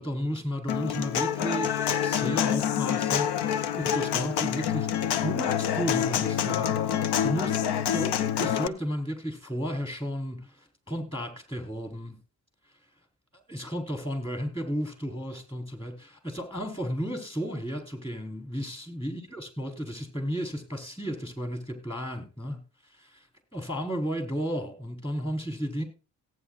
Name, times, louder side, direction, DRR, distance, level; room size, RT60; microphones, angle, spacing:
voice 1, 0.0-7.6 7.9-12.2 13.3-22.6 22.9-23.3 23.5-25.8, equal, 15° left, 5 dB, 4.6 m, -33 dB
Human voice / Acoustic guitar, 0.7-8.7, left 9 dB, 70° left, 0.8 m, -27 dB
17.5 x 9.1 x 2.5 m, 0.31 s
supercardioid pair, 60°, 41 cm